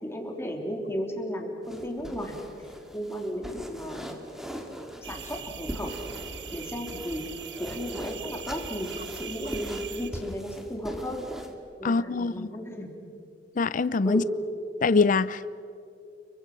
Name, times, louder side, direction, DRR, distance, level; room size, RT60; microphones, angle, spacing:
voice 1, 0.0-2.4 2.9-4.2 4.8-5.9 6.5-7.2 7.6-11.3 11.8-12.9 14.0-14.3, equal, 15° left, 2 dB, 3.4 m, -34 dB
sound 1, 1.6-11.5, equal, ahead, 2.1 m, -41 dB
sound 2, 5.0-10.1, right 7 dB, 75° right, 1.4 m, -41 dB
voice 2, 11.8-12.5 13.6-14.2 14.8-15.5, left 4 dB, 50° left, 17 dB, 0.5 m, -24 dB
30.0 x 23.5 x 6.2 m, 2.5 s
head